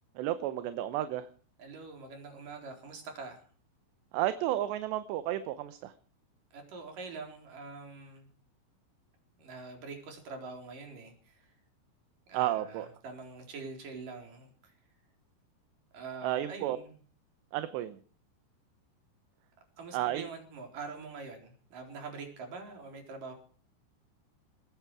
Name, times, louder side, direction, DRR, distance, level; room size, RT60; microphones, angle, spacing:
voice 1, 0.2-1.3 4.1-5.9 12.3-12.9 16.2-16.8 17.5-18.0 19.9-20.3, right 13 dB, 75° right, 11 dB, 2.8 m, -32 dB
voice 2, 1.6-3.4 6.5-8.3 9.4-11.5 12.3-14.7 15.9-17.0 19.8-23.3, right 4 dB, 45° right, 3 dB, 5.2 m, -44 dB
19.5 x 15.5 x 4.8 m, 0.42 s
omnidirectional pair, 5.5 m